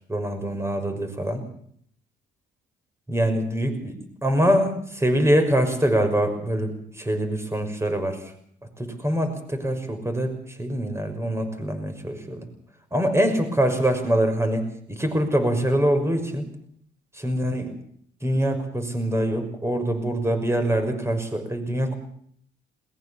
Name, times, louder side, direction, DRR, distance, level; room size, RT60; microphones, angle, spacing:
voice 1, 0.1-1.4 3.1-8.2 8.8-12.4 12.9-16.4 17.1-17.7 18.2-22.0, right 1 dB, 15° right, 7 dB, 6.0 m, -24 dB
21.0 x 20.5 x 7.3 m, 0.64 s
cardioid pair, 90°, 20 cm